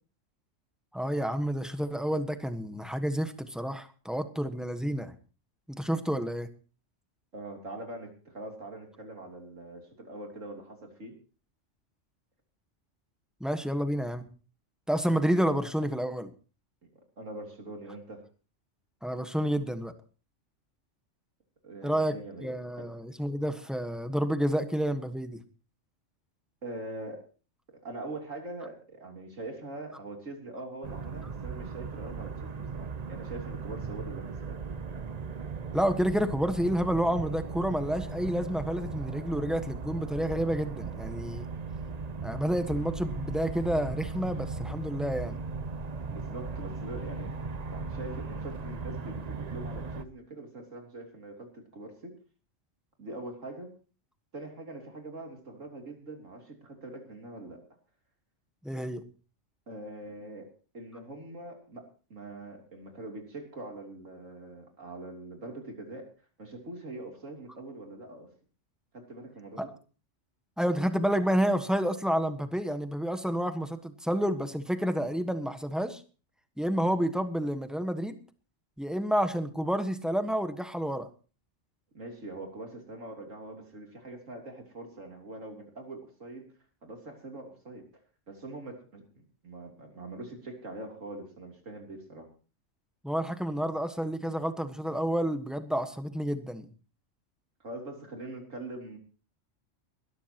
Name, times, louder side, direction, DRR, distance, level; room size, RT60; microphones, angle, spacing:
voice 1, 0.9-5.1 5.7-6.5 13.4-14.3 14.9-16.3 19.0-19.9 21.8-25.4 35.7-41.5 42.2-45.4 58.6-59.0 69.6-69.7 70.6-76.0 76.6-78.2 78.8-81.1 93.0-96.7, equal, ahead, 8 dB, 1.2 m, -29 dB
voice 2, 7.3-11.1 17.2-18.2 21.6-22.5 22.8-22.9 26.6-27.2 27.8-34.6 46.1-47.3 47.7-52.1 53.0-53.7 54.3-57.6 59.7-60.5 60.7-66.1 66.4-68.3 68.9-69.7 81.9-86.5 86.8-87.9 88.3-92.3 97.6-99.0, right 2 dB, 85° right, 2 dB, 3.6 m, -43 dB
sound 1, 30.8-50.0, right 4 dB, 40° right, 0.8 m, -37 dB
22.0 x 13.0 x 3.0 m, 0.36 s
omnidirectional pair, 1.3 m